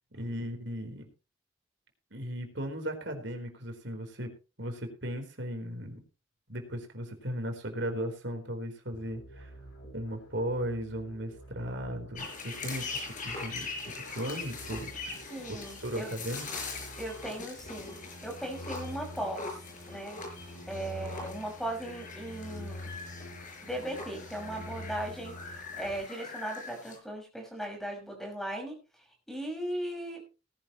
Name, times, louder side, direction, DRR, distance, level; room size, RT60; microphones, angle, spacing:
voice 1, 0.1-1.0 2.1-4.3 4.6-6.0 6.5-9.5 9.9-13.7 13.9-14.9 15.5-16.5, equal, 65° right, 5 dB, 4.2 m, -36 dB
sound 1, 8.9-26.0, equal, 90° left, 4.6 m, -47 dB
sound 2, 12.1-27.0, left 4 dB, 40° left, 5.5 m, -42 dB
voice 2, 15.3-16.1 17.0-19.6 19.9-20.2 20.7-22.9 23.6-28.8 29.3-30.2, right 1 dB, ahead, 1 dB, 5.9 m, -38 dB
19.0 x 11.0 x 3.1 m, 0.32 s
head